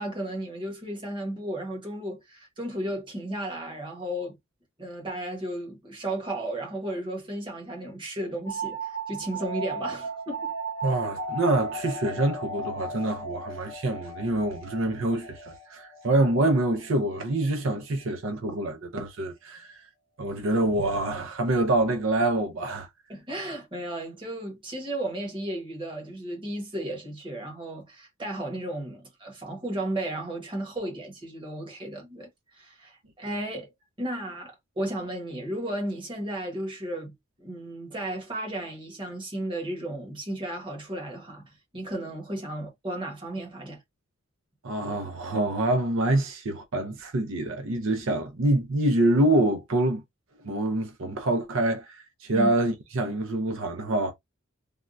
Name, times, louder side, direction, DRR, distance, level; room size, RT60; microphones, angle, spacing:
voice 1, 0.0-4.4 4.8-10.5 23.1-33.7 34.0-37.1 37.4-43.8 52.3-52.5, right 1 dB, 25° right, 1.2 m, -34 dB
sound 1, 8.5-17.8, right 2 dB, 20° left, 0.7 m, -36 dB
voice 2, 10.8-19.8 20.2-22.9 44.6-50.0 50.4-54.1, right 1 dB, 70° right, 0.6 m, -26 dB
3.4 x 2.2 x 2.5 m
head